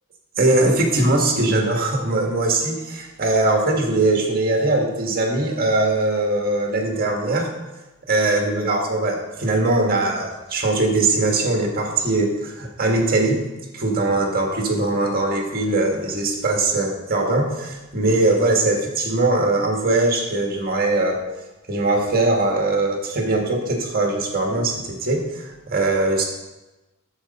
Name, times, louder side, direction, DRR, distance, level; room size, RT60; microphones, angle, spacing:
voice 1, 0.4-7.5 8.1-13.4 13.7-21.2 21.7-26.2, right 2 dB, 45° right, 1 dB, 1.7 m, -21 dB
9.7 x 7.6 x 4.3 m, 1.0 s
head